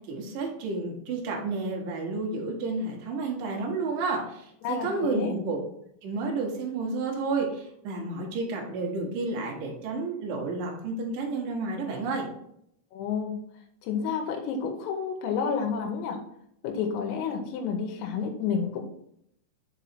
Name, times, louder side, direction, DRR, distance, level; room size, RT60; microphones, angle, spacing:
voice 1, 0.1-5.6 6.0-12.2, right 3 dB, 80° right, -1 dB, 2.0 m, -31 dB
voice 2, 4.6-5.3 12.9-13.4 13.8-16.2 16.6-18.8, left 6 dB, 90° left, 3 dB, 3.4 m, -30 dB
6.9 x 4.2 x 4.2 m, 0.72 s
omnidirectional pair, 5.8 m